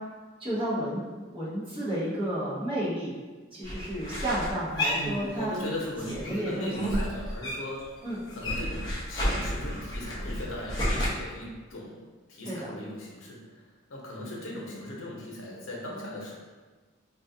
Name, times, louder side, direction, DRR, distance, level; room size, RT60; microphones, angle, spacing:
voice 1, 0.4-1.0 1.3-3.2 3.5-5.5 6.1-6.9 8.0-8.2 12.4-12.7, right 1 dB, 25° right, -10 dB, 0.9 m, -31 dB
sound 1, 3.6-5.7 6.0-7.8 8.1-11.1, equal, 20° left, 0.7 m, -31 dB
voice 2, 5.0-7.9 8.3-12.0 12.3-13.4 13.9-16.3, left 1 dB, 85° left, -3 dB, 0.8 m, -38 dB
4.1 x 2.4 x 2.6 m, 1.3 s
head